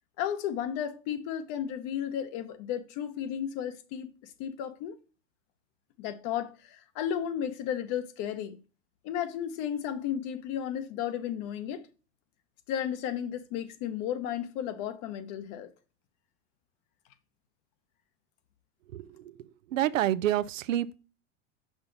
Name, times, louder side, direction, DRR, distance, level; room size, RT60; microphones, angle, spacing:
voice 1, 0.2-5.0 6.0-8.6 9.0-11.9 12.7-15.7, left 9 dB, 50° left, 1.1 m, -34 dB
voice 2, 18.9-21.0, right 12 dB, 80° right, 0.6 m, -29 dB
5.7 x 5.6 x 3.9 m
hypercardioid pair, 100°, 38 cm